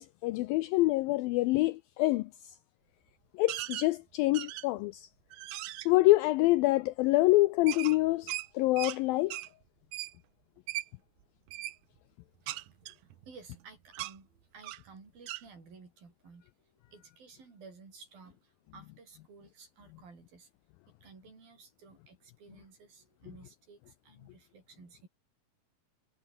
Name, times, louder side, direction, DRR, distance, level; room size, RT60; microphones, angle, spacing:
voice 1, 0.0-2.6 3.3-5.1 5.9-9.4, left 19 dB, 80° left, 2.1 m, -26 dB
sound 1, 3.5-3.9 4.3-4.8 5.3-5.9 7.7-9.0 9.3-9.5 9.9-10.1 10.7-10.9 11.5-11.8 12.5-13.6 13.9-14.1 14.6-14.9 15.3-15.4, right 15 dB, 80° right, 1.7 m, -38 dB
voice 2, 13.0-20.5 21.0-25.1, right 4 dB, 60° right, 8.2 m, -55 dB
omnidirectional pair, 4.7 m